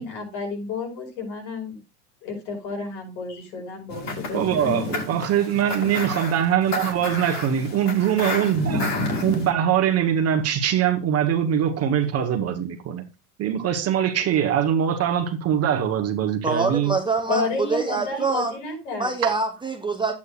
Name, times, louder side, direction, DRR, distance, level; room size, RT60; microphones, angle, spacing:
voice 1, 0.0-1.8 2.2-4.8 17.3-19.1, left 3 dB, 65° left, 5.3 m, -31 dB
sound 1, 3.9-9.5, left 2 dB, 35° left, 2.6 m, -30 dB
voice 2, 4.3-9.0 9.2-13.0 13.4-16.9 19.2-19.3, right 9 dB, 30° right, 1.2 m, -22 dB
voice 3, 16.4-18.5 19.0-20.1, right 4 dB, 10° right, 0.8 m, -25 dB
11.0 x 8.5 x 2.4 m
supercardioid pair, 120°, 47 cm